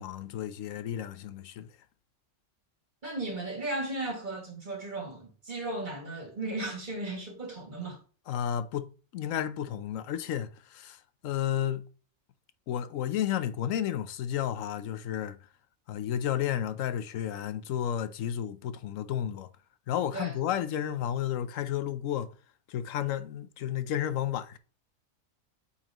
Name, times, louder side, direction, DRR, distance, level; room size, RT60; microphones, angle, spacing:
voice 1, 0.0-1.7 8.3-11.8 12.7-15.4 15.9-19.5 19.9-22.3 22.7-24.6, left 10 dB, 90° left, 1.0 m, -32 dB
voice 2, 3.0-8.0 20.1-20.4, right 2 dB, 40° right, 2.2 m, -35 dB
8.9 x 4.3 x 3.0 m
omnidirectional pair, 1.3 m